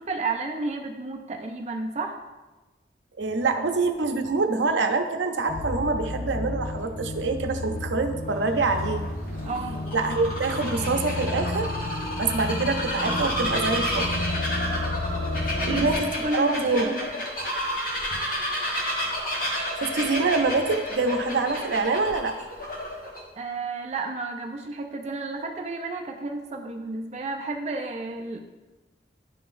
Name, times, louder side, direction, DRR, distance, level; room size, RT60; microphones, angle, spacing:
voice 1, 0.0-2.2 9.4-9.8 15.6-15.9 16.2-16.5 16.8-17.2 23.4-28.4, right 3 dB, 40° right, 2 dB, 0.4 m, -32 dB
voice 2, 3.2-9.1 9.9-11.9 12.2-14.2 15.7-16.0 16.3-16.9 19.8-22.4, right 3 dB, 90° right, 6 dB, 0.6 m, -25 dB
sound 1, 5.5-15.9, left 1 dB, 85° left, 1.0 m, -32 dB
Bird vocalization bird call bird song, 8.2-23.2, equal, 50° left, 1.4 m, -31 dB
10.5 x 3.8 x 2.6 m, 1.2 s
head